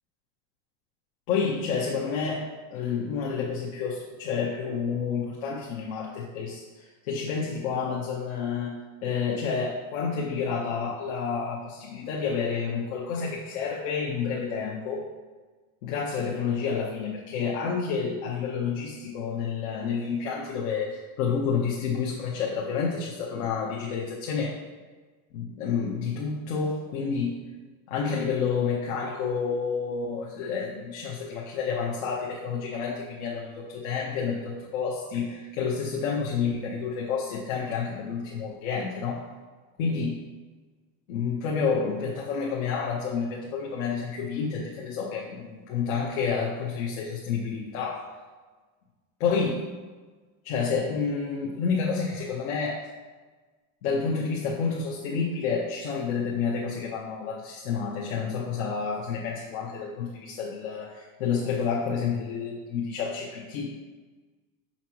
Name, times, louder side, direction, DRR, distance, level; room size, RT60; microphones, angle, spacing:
voice 1, 1.3-8.7 9.0-15.0 15.8-24.6 25.3-27.4 27.9-39.2 39.8-40.2 41.1-48.1 49.2-49.7 50.4-52.8 53.8-63.7, left 5 dB, 90° left, -3 dB, 1.1 m, -29 dB
6.2 x 5.8 x 3.0 m, 1.3 s
cardioid pair, 155°, 40 cm